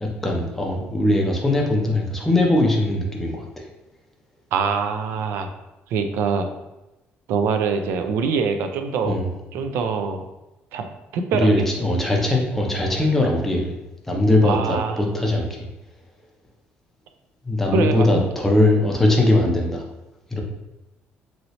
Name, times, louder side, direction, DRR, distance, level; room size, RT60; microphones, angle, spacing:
voice 1, 0.0-3.7 9.0-9.3 11.3-13.7 14.1-15.7 17.4-19.9 20.3-20.4, left 1 dB, 5° left, 0 dB, 0.4 m, -20 dB
voice 2, 4.5-5.5 5.9-6.5 7.3-9.2 9.5-10.2 10.7-10.9 11.1-11.5 14.4-15.0 17.7-18.3, right 5 dB, 70° right, 7 dB, 0.4 m, -23 dB
3.0 x 2.7 x 2.8 m, 0.99 s
cardioid pair, 175°, 4 cm